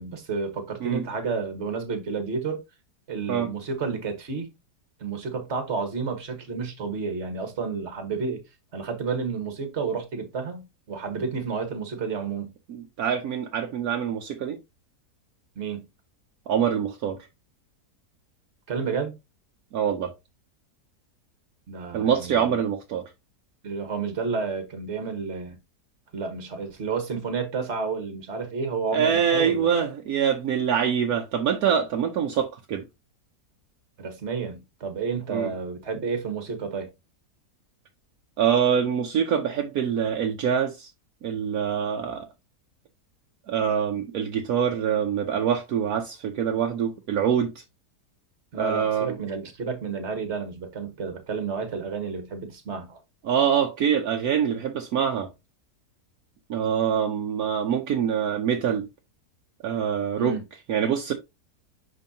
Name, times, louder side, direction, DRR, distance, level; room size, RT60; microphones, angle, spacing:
voice 1, 0.0-2.6 3.1-4.5 5.0-8.4 8.7-12.5 15.5-15.9 18.7-19.1 21.7-22.6 23.6-25.6 26.1-29.7 34.0-36.9 48.5-53.0 60.2-60.4, right 5 dB, 45° right, 1.6 m, -31 dB
voice 2, 12.7-14.6 16.5-17.2 19.7-20.1 21.9-23.1 28.9-32.8 35.3-35.5 38.4-40.9 41.2-42.3 43.5-47.6 48.5-49.2 53.2-55.3 56.5-58.8 59.6-60.4 60.7-61.1, right 8 dB, 70° right, 1.2 m, -25 dB
10.5 x 3.7 x 2.7 m
omnidirectional pair, 1.7 m